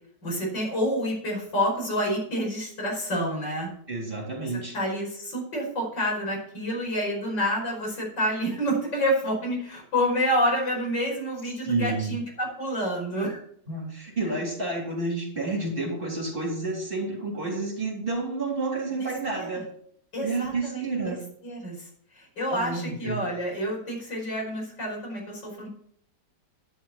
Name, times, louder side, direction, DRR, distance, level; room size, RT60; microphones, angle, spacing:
voice 1, 0.2-3.7 4.4-13.4 19.0-19.1 19.3-19.6 20.1-21.1 21.4-21.9 22.1-25.7, equal, 90° left, -1 dB, 5.8 m, -28 dB
voice 2, 3.9-4.7 11.6-12.2 13.7-19.6 20.2-21.2 22.5-23.2, right 3 dB, 30° right, -2 dB, 3.7 m, -30 dB
11.5 x 11.0 x 4.3 m, 0.65 s
omnidirectional pair, 1.9 m